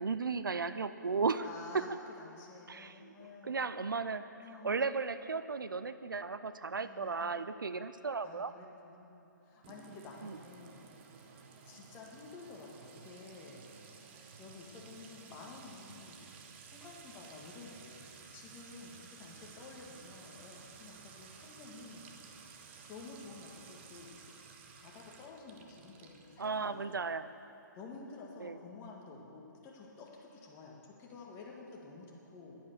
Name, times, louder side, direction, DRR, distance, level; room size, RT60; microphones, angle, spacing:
voice 1, 0.0-1.5 1.7-1.9 2.7-4.2 4.6-8.5 10.2-10.4 26.4-27.3 28.4-28.6, right 4 dB, 80° right, 13 dB, 0.5 m, -35 dB
voice 2, 1.4-1.9 2.2-3.9 4.4-4.8 6.8-7.4 8.2-11.2 11.7-13.7 14.0-16.3 16.6-22.1 22.9-24.3 24.8-27.0 27.8-32.6, left 4 dB, 20° left, -1 dB, 1.8 m, -51 dB
Sink (filling or washing) / Trickle dribble / Fill (with liquid), 9.6-27.1, right 6 dB, 35° right, 1.0 m, -55 dB
10.5 x 10.0 x 6.7 m, 2.8 s
figure-of-eight pair, 135°, 11 cm